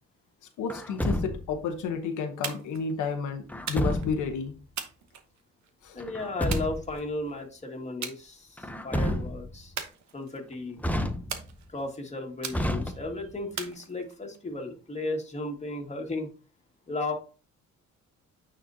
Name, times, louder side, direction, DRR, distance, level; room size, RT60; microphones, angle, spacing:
voice 1, 0.6-4.5 5.8-6.0, left 5 dB, 80° left, 4 dB, 1.1 m, -31 dB
Truck, 0.7-1.7 3.5-4.3 6.0-7.0 8.6-9.6 10.8-11.6 12.5-13.4, left 1 dB, 5° left, 0.7 m, -30 dB
sound 1, 2.4-2.8 3.7-4.1 4.8-5.7 6.5-7.3 8.0-8.2 8.6-9.0 9.8-10.5 11.3-11.9 12.4-13.0 13.6-14.4, right 8 dB, 65° right, 1.1 m, -39 dB
voice 2, 5.9-8.6 8.8-9.7 10.1-10.8 11.7-16.3 16.9-17.1, left 2 dB, 20° left, 1 dB, 2.0 m, -35 dB
8.9 x 4.4 x 2.7 m, 0.34 s
cardioid pair, 90°, 30 cm